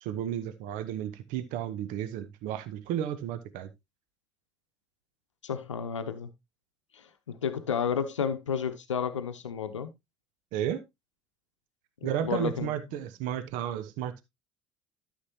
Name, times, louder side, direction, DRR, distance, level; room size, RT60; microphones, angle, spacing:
voice 1, 0.0-3.7 10.5-10.8 12.0-14.2, right 10 dB, 60° right, 0.9 m, -33 dB
voice 2, 5.4-6.3 6.9-9.9 12.0-12.7, left 7 dB, 85° left, 0.7 m, -32 dB
13.0 x 6.4 x 2.8 m
figure-of-eight pair, 60°, 15 cm